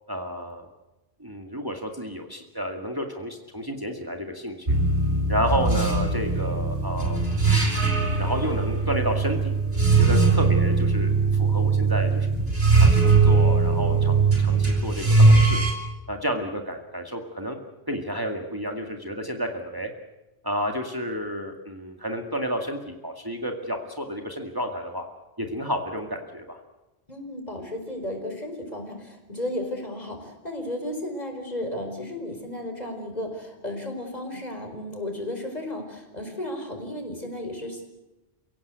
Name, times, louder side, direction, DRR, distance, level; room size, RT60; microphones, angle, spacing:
voice 1, 0.1-0.7 1.2-4.8 5.3-7.3 8.0-9.5 9.9-12.3 12.8-15.6 16.1-17.6 17.9-19.9 20.4-25.1 25.4-26.6, equal, 20° right, 3 dB, 2.1 m, -31 dB
sound 1, 4.7-15.7, right 3 dB, 70° right, 4.9 m, -20 dB
voice 2, 27.1-37.9, left 1 dB, 40° left, 4 dB, 5.0 m, -34 dB
29.5 x 17.0 x 8.3 m, 1.1 s
omnidirectional pair, 1.1 m